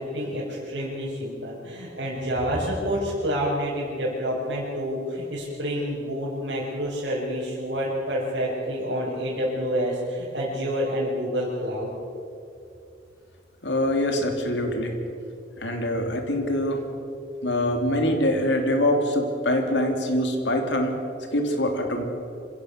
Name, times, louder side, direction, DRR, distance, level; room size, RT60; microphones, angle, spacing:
voice 1, 0.0-11.9, equal, 80° right, -9 dB, 5.9 m, -28 dB
voice 2, 13.6-15.0 15.6-16.8 17.4-21.0 21.3-22.0, left 1 dB, 85° left, 4 dB, 3.1 m, -24 dB
26.5 x 16.5 x 6.7 m, 2.6 s
head